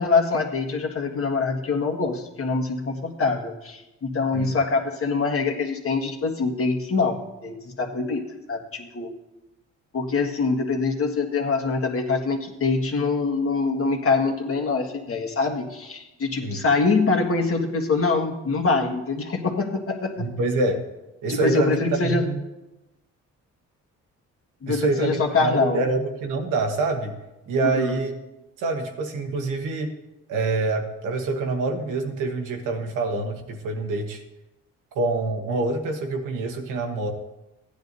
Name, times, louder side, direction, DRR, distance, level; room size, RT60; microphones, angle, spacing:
voice 1, 0.0-9.1 9.9-20.3 21.3-22.3 24.6-25.8 27.6-28.0, left 4 dB, 50° left, 1 dB, 1.6 m, -24 dB
voice 2, 20.2-20.8 21.2-22.4 24.7-27.2 27.5-28.1 28.6-29.9 30.3-34.2 34.9-37.1, right 3 dB, 90° right, 3 dB, 1.5 m, -26 dB
15.5 x 10.0 x 2.7 m, 0.98 s
cardioid pair, 90°, 30 cm